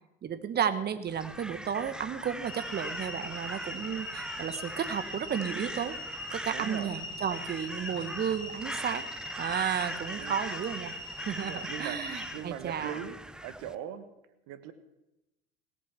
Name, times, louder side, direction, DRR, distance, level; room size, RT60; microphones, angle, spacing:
voice 1, 0.2-6.0 6.3-9.1 9.4-10.9 11.3-13.0, right 8 dB, 35° right, 12 dB, 1.3 m, -33 dB
Crow, 1.1-13.7, right 1 dB, 5° right, 0.7 m, -41 dB
sound 1, 2.4-12.3, left 1 dB, 90° left, 1.8 m, -41 dB
voice 2, 6.5-6.9 10.1-10.4 11.4-13.2 13.4-14.0 14.5-14.7, right 9 dB, 55° right, 12 dB, 1.4 m, -40 dB
17.5 x 8.7 x 7.1 m, 0.91 s
figure-of-eight pair, 70°, 29 cm